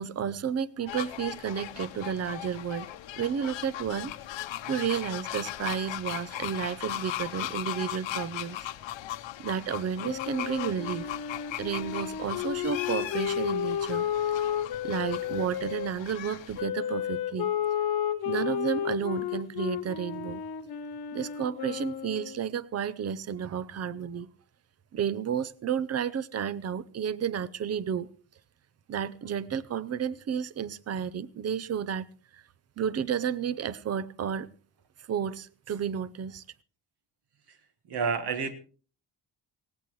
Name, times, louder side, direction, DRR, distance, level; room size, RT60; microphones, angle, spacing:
voice 1, 0.0-2.9 3.2-4.1 4.7-8.6 9.4-11.1 11.6-14.4 14.8-17.5 18.3-20.4 21.1-24.3 24.9-28.1 28.9-32.1 32.3-32.4 32.8-34.5 35.1-36.4, right 8 dB, 35° right, 0.6 m, -32 dB
sound 1, 0.9-16.6, left 13 dB, 85° left, 1.0 m, -38 dB
Wind instrument woodwind instrument, 10.0-15.9 16.6-22.4, left 9 dB, 55° left, 1.2 m, -32 dB
voice 2, 37.9-38.5, right 5 dB, 60° right, 1.6 m, -29 dB
18.5 x 17.5 x 3.1 m
cardioid pair, 165°, 44 cm